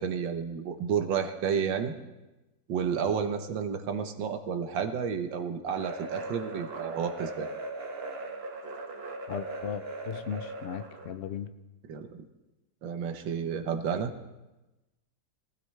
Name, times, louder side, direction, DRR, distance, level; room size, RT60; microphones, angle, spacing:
voice 1, 0.0-1.9 2.7-7.5 11.9-12.1 12.8-14.1, right 7 dB, 80° right, 7 dB, 1.7 m, -31 dB
sound 1, 5.7-11.2, right 2 dB, 35° right, 1.3 m, -39 dB
voice 2, 9.3-11.5, left 8 dB, 70° left, 10 dB, 0.6 m, -37 dB
23.5 x 16.0 x 3.3 m, 1.0 s
omnidirectional pair, 2.0 m